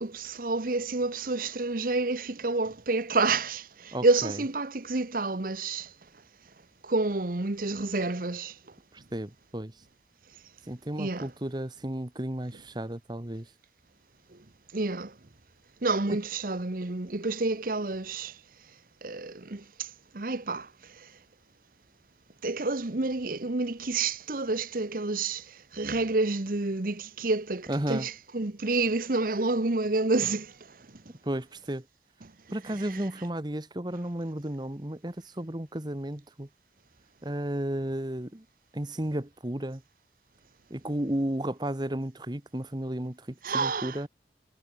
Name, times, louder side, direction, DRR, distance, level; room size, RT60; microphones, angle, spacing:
voice 1, 0.0-5.9 6.8-8.6 11.0-11.3 14.3-14.4 14.7-15.1 15.8-18.4 19.0-21.1 22.4-30.8 32.2-32.3 32.7-33.0 43.4-44.0, right 3 dB, 50° right, 1.1 m, -29 dB
voice 2, 3.9-4.3 8.9-9.7 10.7-13.5 16.1-16.2 27.7-28.1 31.2-31.8 32.5-36.5 37.2-38.4 38.7-39.8 40.7-44.1, right 1 dB, 25° right, 1.4 m, -33 dB
head